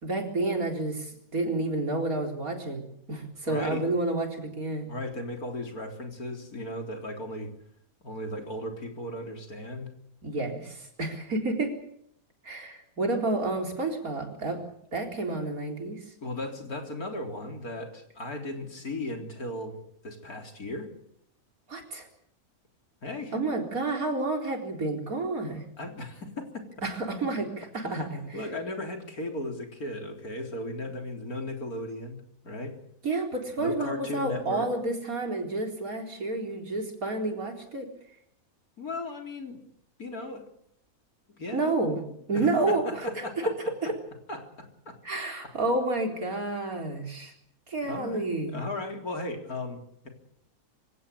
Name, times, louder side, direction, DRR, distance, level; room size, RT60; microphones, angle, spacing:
voice 1, 0.0-4.9 10.2-11.7 12.4-14.6 14.9-16.0 21.7-22.1 23.3-25.6 26.8-28.2 33.0-37.9 41.5-42.0 42.3-43.5 43.8-43.9 45.0-47.3 47.7-48.6, right 2 dB, 70° right, 3 dB, 4.6 m, -30 dB
voice 2, 3.4-3.9 4.9-7.5 8.0-9.9 16.2-19.8 20.0-20.9 23.0-23.3 25.8-26.7 27.8-32.8 33.6-34.7 38.8-39.6 40.0-40.5 41.4-41.7 42.3-43.5 44.3-45.0 45.4-45.5 47.8-50.1, left 1 dB, 75° left, 3 dB, 4.3 m, -36 dB
25.0 x 17.0 x 8.4 m, 0.71 s
omnidirectional pair, 1.6 m